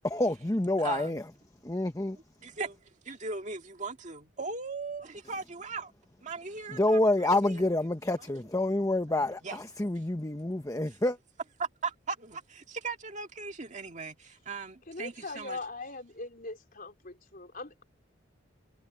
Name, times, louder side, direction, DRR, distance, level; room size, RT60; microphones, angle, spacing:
voice 1, 0.0-1.2 1.6-2.2 6.7-11.2, left 1 dB, 15° left, 0.9 m, -28 dB
voice 2, 0.8-1.2 2.4-5.9 6.2-7.6 8.2-8.3 9.4-9.6 11.6-15.6, right 4 dB, 40° right, 2.0 m, -38 dB
voice 3, 14.8-17.8, left 3 dB, 50° left, 4.0 m, -41 dB
head